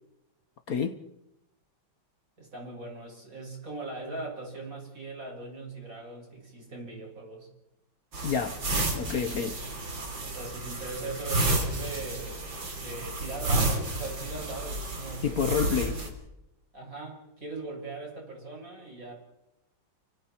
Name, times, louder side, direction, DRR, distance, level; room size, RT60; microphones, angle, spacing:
voice 1, 0.7-1.0 8.2-8.6 8.9-9.6 15.2-15.9, left 7 dB, 55° left, 1.2 m, -28 dB
voice 2, 2.4-7.5 9.6-9.8 10.2-12.5 12.8-16.0 16.7-19.1, right 3 dB, 40° right, 7.5 m, -40 dB
sound 1, 8.1-16.1, right 2 dB, 70° right, 4.1 m, -31 dB
29.5 x 25.0 x 4.5 m
omnidirectional pair, 2.1 m